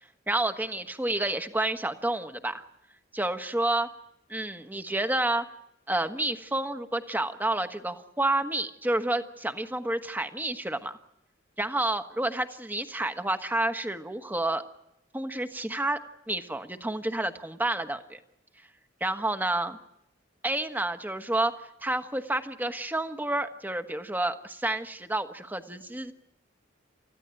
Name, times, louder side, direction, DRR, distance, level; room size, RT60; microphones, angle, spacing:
voice 1, 0.3-2.6 3.1-3.9 4.3-5.4 5.9-11.0 11.6-14.6 15.1-16.0 16.3-18.2 19.0-19.8 20.4-21.5 21.8-26.1, right 2 dB, 10° right, 8 dB, 1.3 m, -29 dB
30.0 x 15.0 x 9.1 m, 0.81 s
head